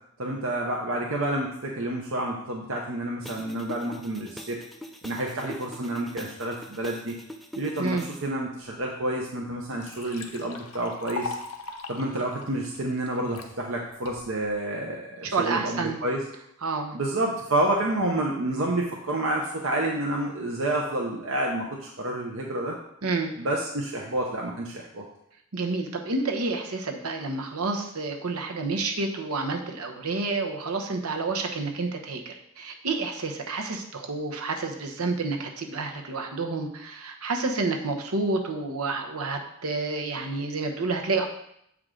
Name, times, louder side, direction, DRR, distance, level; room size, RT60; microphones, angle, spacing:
voice 1, 0.2-4.6 5.0-7.2 7.5-11.3 11.9-16.2 16.9-22.8 23.4-25.0, right 1 dB, 65° right, -1 dB, 0.8 m, -29 dB
sound 1, 3.2-8.2, equal, ahead, 0.4 m, -44 dB
Liquid, 9.0-9.1 9.5-13.5 14.1-14.5, left 4 dB, 90° left, 0.8 m, -39 dB
voice 2, 15.3-16.0 16.6-17.0 23.0-23.3 25.5-41.3, right 3 dB, 85° right, 3 dB, 1.0 m, -29 dB
7.8 x 4.8 x 3.8 m, 0.74 s
head